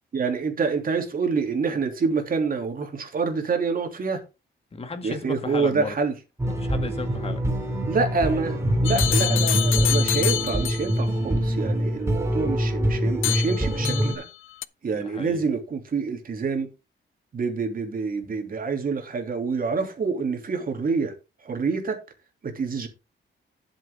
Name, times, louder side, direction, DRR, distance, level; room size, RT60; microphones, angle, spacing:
voice 1, 0.1-4.2 5.0-6.1 7.9-14.2 14.8-16.7 17.3-21.1 21.4-22.0 22.4-22.9, right 4 dB, 45° right, 3.0 m, -27 dB
voice 2, 4.7-6.0 6.4-7.4 14.9-15.4, left 4 dB, 30° left, 1.9 m, -35 dB
sound 1, 6.4-14.2, equal, 15° right, 3.0 m, -24 dB
sound 2, 8.8-11.0 13.2-14.3 14.6-14.7, left 12 dB, 75° left, 0.6 m, -27 dB
11.5 x 7.5 x 3.8 m
wide cardioid pair, 150°, 21 cm